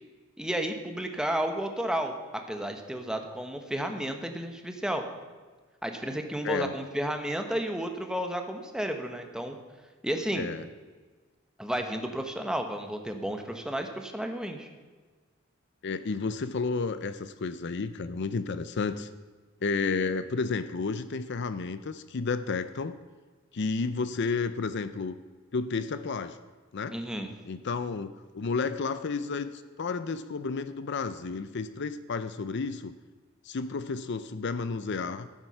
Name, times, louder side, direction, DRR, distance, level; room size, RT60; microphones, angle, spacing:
voice 1, 0.4-5.0 5.8-9.6 10.0-10.5 11.6-14.7 26.9-27.3, right 1 dB, 5° right, 5 dB, 1.1 m, -32 dB
voice 2, 10.3-10.7 15.8-19.1 19.6-23.0 23.5-25.2 25.5-26.4 26.7-26.9 27.5-32.9 33.4-35.3, left 4 dB, 55° left, 12 dB, 0.5 m, -31 dB
14.0 x 7.9 x 5.8 m, 1.4 s
head